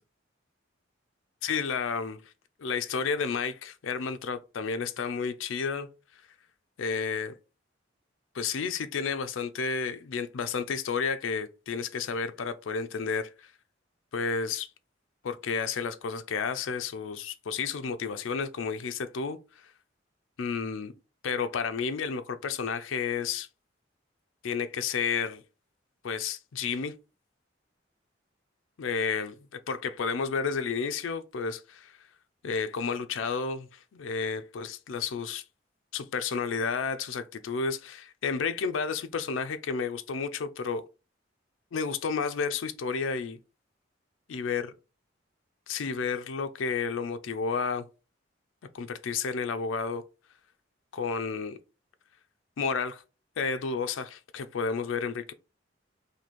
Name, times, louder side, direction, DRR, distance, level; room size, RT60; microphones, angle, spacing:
voice 1, 1.4-2.2 2.6-5.9 6.8-7.3 8.3-13.5 14.1-14.7 15.2-19.7 20.4-20.9 21.2-23.5 24.4-25.4 26.0-26.9 28.8-29.3 29.7-32.0 32.4-35.4 35.9-40.8 41.7-43.4 44.3-44.7 45.7-47.8 48.7-50.0 50.9-51.6 52.6-53.0 53.4-55.3, left 5 dB, 85° left, 0.4 m, -31 dB
3.0 x 2.7 x 4.1 m
head